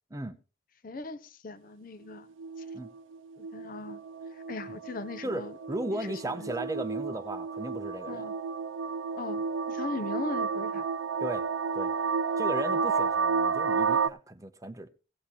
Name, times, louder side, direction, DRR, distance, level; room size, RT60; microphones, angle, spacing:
voice 1, 0.8-2.3 2.6-2.7 3.4-4.0 4.3-5.5 5.9-6.5 8.1-8.3 9.2-10.8, left 3 dB, 45° left, 0.6 m, -39 dB
sound 1, 2.1-14.1, right 5 dB, 80° right, 0.5 m, -31 dB
voice 2, 5.2-8.2 11.2-11.5 11.7-11.9 12.4-14.9, right 1 dB, 15° right, 0.8 m, -36 dB
17.5 x 6.7 x 4.2 m
head